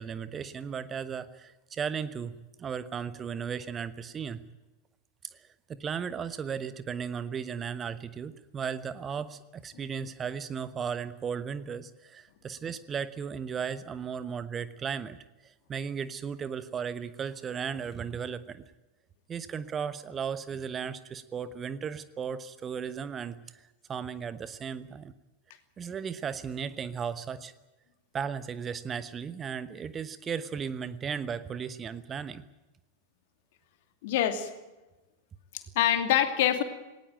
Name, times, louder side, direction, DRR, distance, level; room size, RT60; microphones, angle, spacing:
voice 1, 0.0-2.3 2.6-4.4 5.3-18.6 19.3-25.1 25.8-27.5 28.1-32.4, right 7 dB, 20° right, 14 dB, 1.1 m, -36 dB
voice 2, 34.0-34.5 35.5-36.6, left 11 dB, 50° left, 8 dB, 2.6 m, -25 dB
19.0 x 19.0 x 9.1 m, 1.1 s
figure-of-eight pair, 90°, 0 cm